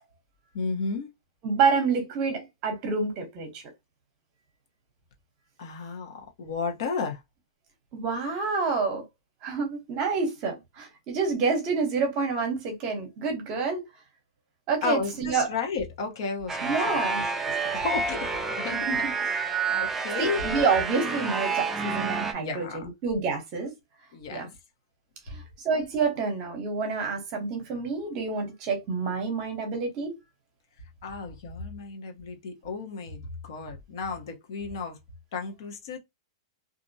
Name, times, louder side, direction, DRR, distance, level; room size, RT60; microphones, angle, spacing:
voice 1, 0.5-1.1 5.6-7.2 14.8-17.0 17.7-18.3 18.6-20.4 22.4-22.8 24.1-24.5 31.0-35.0 35.3-36.0, left 4 dB, 55° left, 0.8 m, -33 dB
voice 2, 1.4-3.6 7.9-9.0 9.4-13.8 14.7-15.5 16.6-17.3 18.7-19.1 20.2-23.7 24.3-24.5 25.3-30.2, right 4 dB, 30° right, 0.9 m, -28 dB
sound 1, 16.5-22.3, right 4 dB, 10° right, 0.3 m, -29 dB
2.5 x 2.1 x 2.6 m
supercardioid pair, 165°, 3 cm